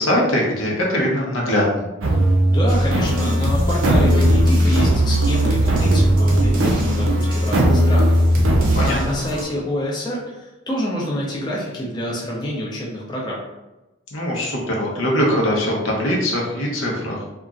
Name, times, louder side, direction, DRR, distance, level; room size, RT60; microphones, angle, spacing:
voice 1, 0.0-1.9 8.7-9.2 14.1-17.2, equal, 85° left, -2 dB, 0.8 m, -21 dB
sound 1, 2.0-8.9, right 1 dB, 85° right, 0.6 m, -17 dB
voice 2, 2.5-8.2 8.8-10.2 10.7-13.4, equal, 20° left, -4 dB, 0.5 m, -27 dB
sound 2, 2.7-9.4, equal, 45° right, 0.6 m, -27 dB
2.9 x 2.4 x 2.4 m, 1.0 s
head